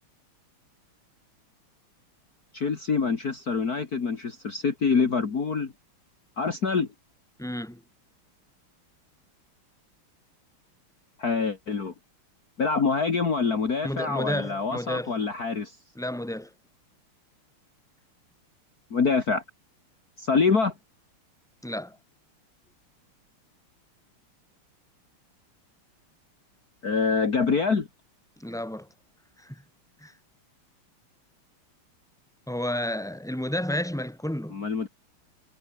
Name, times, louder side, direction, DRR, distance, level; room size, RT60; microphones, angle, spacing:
voice 1, 2.5-5.7 6.4-6.9 11.2-11.9 12.6-15.8 18.9-19.4 20.2-20.7 26.8-27.9 34.5-34.9, left 5 dB, 45° left, 2.5 m, -25 dB
voice 2, 7.4-7.8 13.8-15.1 16.0-16.5 21.6-22.0 28.4-28.9 29.4-29.6 30.0-30.1 32.5-34.7, left 1 dB, ahead, 4.3 m, -31 dB
omnidirectional pair, 2.4 m